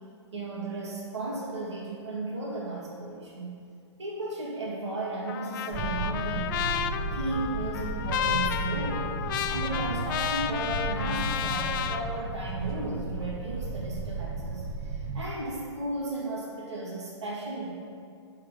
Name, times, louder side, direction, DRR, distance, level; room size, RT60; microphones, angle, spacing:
voice 1, 0.3-3.6 4.0-9.1 9.5-17.7, right 2 dB, 75° right, -5 dB, 2.0 m, -35 dB
Trumpet, 5.3-12.0, left 10 dB, 45° left, 0.4 m, -32 dB
sound 1, 5.7-15.3, right 3 dB, 40° right, 0.9 m, -34 dB
7.6 x 5.8 x 5.1 m, 2.4 s
hypercardioid pair, 125°, 15 cm